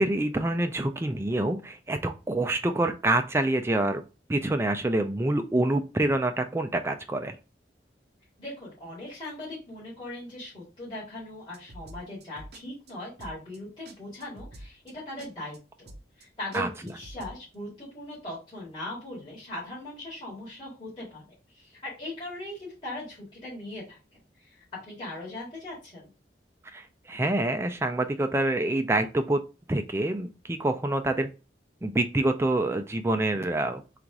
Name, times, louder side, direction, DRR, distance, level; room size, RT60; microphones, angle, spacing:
voice 1, 0.0-4.0 4.3-7.4 16.5-16.7 26.7-29.4 29.7-31.3 31.8-33.8, right 1 dB, 15° right, 7 dB, 0.3 m, -26 dB
voice 2, 8.4-15.9 16.2-21.2 21.5-24.0 24.4-26.1, left 1 dB, 25° left, -9 dB, 2.1 m, -39 dB
sound 1, 11.5-12.6 12.9-13.0 13.2-13.6 13.9-14.0 14.2-14.9 15.2-15.3 15.5-15.6 15.9-16.3 16.5-17.4, right 1 dB, 65° right, 0.7 m, -46 dB
4.0 x 2.5 x 4.6 m, 0.31 s
head